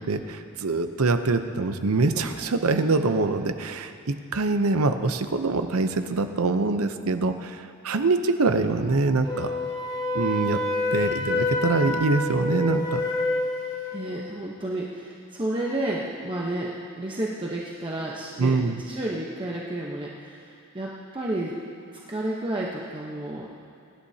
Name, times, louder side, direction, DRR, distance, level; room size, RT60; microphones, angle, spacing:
voice 1, 0.1-9.5 10.1-10.6 10.9-13.0 18.4-18.8, right 3 dB, 80° right, 8 dB, 0.7 m, -24 dB
Wind instrument woodwind instrument, 9.3-14.0, left 2 dB, 20° left, 1.4 m, -27 dB
voice 2, 13.9-21.6 21.9-23.5, right 1 dB, 25° right, -4 dB, 0.9 m, -31 dB
23.5 x 11.5 x 2.8 m, 2.4 s
head